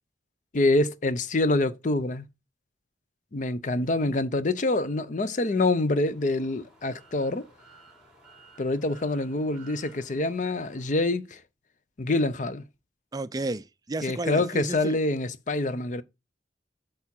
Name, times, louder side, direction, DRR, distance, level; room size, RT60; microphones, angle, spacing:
voice 1, 0.5-2.3 3.3-7.5 8.6-11.4 12.0-12.6 14.0-16.0, left 2 dB, 45° left, 0.6 m, -26 dB
sound 1, 5.8-11.1, right 3 dB, 5° right, 3.6 m, -55 dB
voice 2, 13.1-15.0, right 2 dB, 20° right, 0.4 m, -33 dB
8.4 x 4.8 x 4.4 m
head